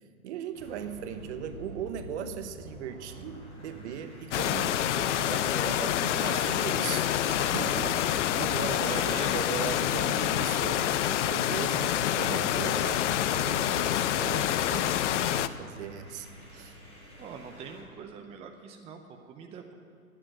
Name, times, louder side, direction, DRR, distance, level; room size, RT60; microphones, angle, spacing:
voice 1, 0.2-16.8, right 9 dB, 50° right, 9 dB, 1.1 m, -39 dB
sound 1, 0.5-17.9, left 1 dB, 15° left, 4.3 m, -47 dB
sound 2, 4.3-15.5, left 11 dB, 55° left, 0.6 m, -27 dB
voice 2, 6.1-6.9 7.6-8.0 8.7-9.4 17.2-19.7, right 6 dB, 15° right, 4 dB, 0.6 m, -43 dB
11.0 x 9.1 x 8.9 m, 2.1 s
hypercardioid pair, 125°, 43 cm